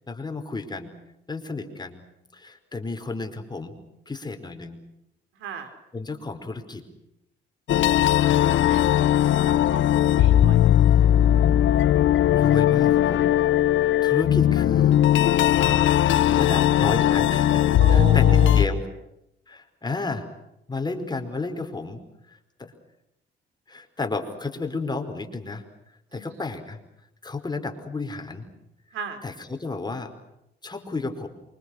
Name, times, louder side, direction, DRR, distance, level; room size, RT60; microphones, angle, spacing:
voice 1, 0.1-0.9 1.3-2.0 2.3-3.7 4.1-4.8 5.9-6.8 8.2-8.6 12.3-13.3 14.0-15.0 15.6-16.0 16.4-18.8 19.5-20.3 20.7-22.0 22.6-22.7 23.7-25.6 26.1-26.8 27.2-28.4 29.2-30.1 30.6-31.3, left 3 dB, 20° left, 6 dB, 5.0 m, -32 dB
voice 2, 5.4-5.7 8.4-9.1 9.4-9.8 10.2-10.7 17.8-18.8 26.1-26.4 28.9-29.2, right 6 dB, 90° right, 8 dB, 5.3 m, -35 dB
sound 1, 7.7-18.7, left 11 dB, 75° left, 1.2 m, -19 dB
28.0 x 25.0 x 6.6 m, 0.85 s
cardioid pair, 90°, 20 cm